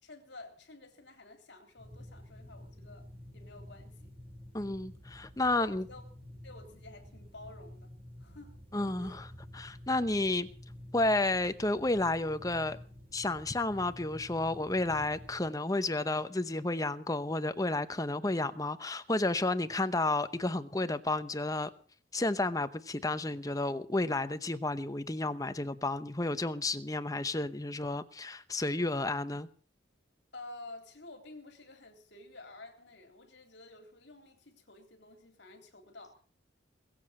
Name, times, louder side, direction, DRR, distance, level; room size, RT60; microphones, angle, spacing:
voice 1, 0.0-3.1 3.3-4.1 5.5-6.0 6.4-7.9 8.2-8.6 9.0-9.2 30.3-36.2, left 2 dB, 65° left, 3.5 m, -51 dB
sound 1, 1.8-15.5, left 1 dB, 30° right, 5.4 m, -50 dB
voice 2, 4.5-5.8 8.7-9.1 9.5-10.5 10.9-12.8 13.1-21.7 22.1-29.5, left 2 dB, 20° left, 0.8 m, -31 dB
21.5 x 7.8 x 7.5 m
head